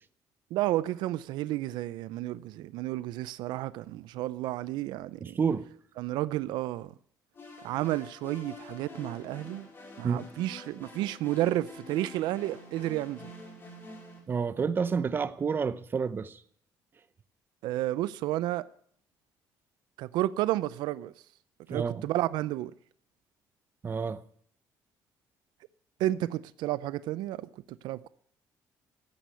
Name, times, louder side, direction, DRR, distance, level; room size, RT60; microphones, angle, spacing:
voice 1, 0.5-5.4 6.0-6.9 7.6-9.7 10.0-13.3 17.6-18.6 20.0-21.1 21.7-22.7 26.0-28.1, right 15 dB, 85° right, 0.5 m, -31 dB
voice 2, 5.2-5.7 10.0-10.2 14.3-16.4 21.7-22.0 23.8-24.2, right 6 dB, 30° right, 0.8 m, -29 dB
sound 1, 7.3-14.2, left 2 dB, 30° left, 5.6 m, -47 dB
13.0 x 9.3 x 9.4 m
cardioid pair, 130°, 7 cm